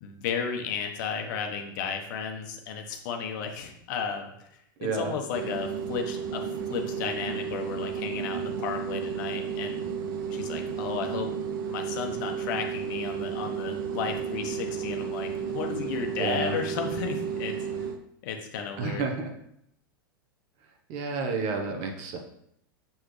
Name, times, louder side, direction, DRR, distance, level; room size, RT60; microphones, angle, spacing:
voice 1, 0.0-9.8 10.3-11.3 11.7-17.9 18.2-19.0, left 6 dB, 60° left, 3 dB, 1.2 m, -34 dB
voice 2, 4.8-5.2 16.2-16.5 18.8-19.3 20.9-22.2, right 4 dB, 50° right, 4 dB, 1.3 m, -30 dB
sound 1, 5.3-18.0, right 7 dB, 65° right, 0.8 m, -33 dB
6.9 x 6.0 x 3.3 m, 0.74 s
hypercardioid pair, 110°, 12 cm